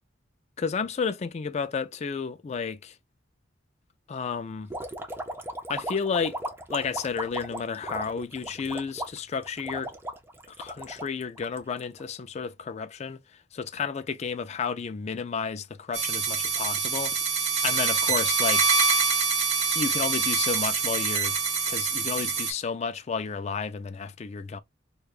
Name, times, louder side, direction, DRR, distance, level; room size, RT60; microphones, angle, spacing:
voice 1, 0.6-3.0 4.1-4.7 5.7-6.4 6.7-9.9 10.5-13.2 13.5-17.2 17.6-18.7 19.8-21.4 21.7-24.6, left 5 dB, 35° left, 0.3 m, -32 dB
sound 1, 4.7-12.0, right 1 dB, 10° right, 0.6 m, -36 dB
sound 2, 15.9-22.5, right 5 dB, 35° right, 1.1 m, -25 dB
4.7 x 2.3 x 2.4 m
head